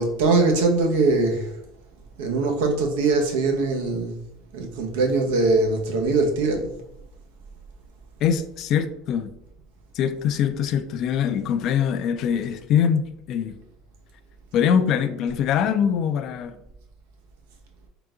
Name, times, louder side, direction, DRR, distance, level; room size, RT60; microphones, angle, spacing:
voice 1, 0.0-1.5 2.2-4.2 4.5-6.7, right 3 dB, 85° right, 0.8 m, -22 dB
voice 2, 8.2-9.3 10.0-13.5 14.5-16.6, left 8 dB, 55° left, 0.4 m, -23 dB
3.8 x 2.3 x 3.7 m
supercardioid pair, 105°, 0 cm